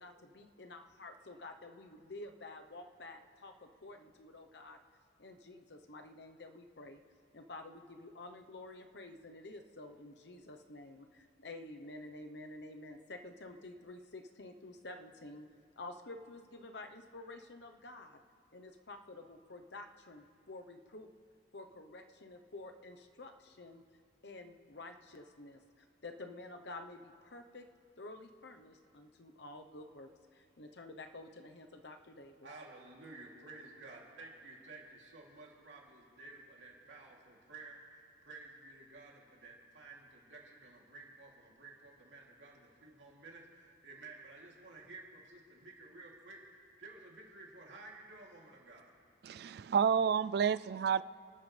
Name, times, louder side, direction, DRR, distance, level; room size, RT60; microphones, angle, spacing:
voice 1, 0.0-4.8 5.2-7.0 7.3-15.5 15.8-18.2 18.5-21.1 21.5-23.8 24.2-27.6 28.0-32.5, left 2 dB, 60° left, 1.0 m, -50 dB
voice 2, 32.4-48.9, right 3 dB, 70° right, 3.0 m, -53 dB
voice 3, 49.2-51.0, right 7 dB, 55° right, 0.3 m, -30 dB
29.0 x 13.0 x 3.4 m
head